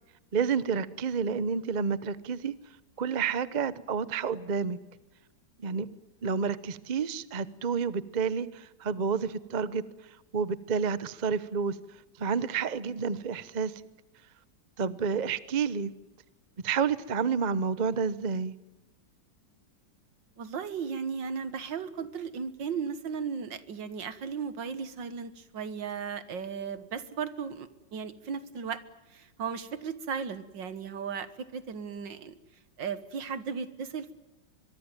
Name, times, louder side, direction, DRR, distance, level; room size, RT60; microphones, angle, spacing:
voice 1, 0.3-2.5 3.0-4.8 5.6-5.9 6.2-9.8 10.3-11.7 12.2-13.7 14.8-15.9 16.6-18.5, right 6 dB, 40° right, 0.6 m, -29 dB
voice 2, 20.4-28.8 29.1-32.3 32.8-34.1, right 6 dB, 75° right, 2.1 m, -36 dB
24.0 x 23.0 x 9.1 m
omnidirectional pair, 2.1 m